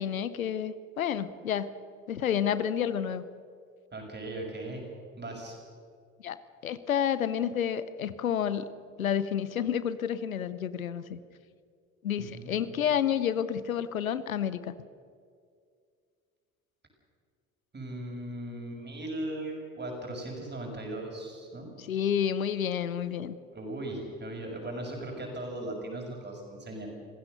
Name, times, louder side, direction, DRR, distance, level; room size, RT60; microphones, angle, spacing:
voice 1, 0.0-1.7 2.1-3.2 6.2-8.7 9.0-11.2 12.0-14.7 21.8-23.4, left 9 dB, 85° left, 15 dB, 0.8 m, -30 dB
voice 2, 3.9-4.8 5.2-5.6 12.2-12.6 17.7-21.7 23.5-26.9, right 1 dB, 25° right, 1 dB, 6.6 m, -38 dB
26.5 x 15.5 x 6.7 m, 2.2 s
figure-of-eight pair, 55°, 41 cm